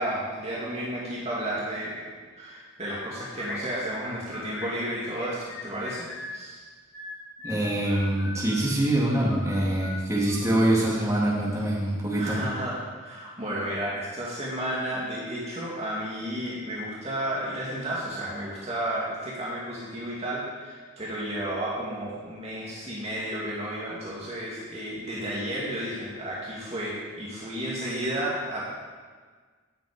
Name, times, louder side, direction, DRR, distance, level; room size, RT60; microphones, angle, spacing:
voice 1, 0.0-2.1 2.4-6.1 6.3-6.6 12.2-28.6, right 1 dB, 30° right, -6 dB, 2.5 m, -32 dB
sound 1, 2.8-3.6 4.3-6.4 6.9-8.7 9.3-11.1, left 3 dB, 10° left, 3.7 m, -41 dB
voice 2, 7.4-12.4, right 1 dB, 15° right, -5 dB, 2.7 m, -24 dB
17.5 x 7.9 x 5.2 m, 1.5 s
head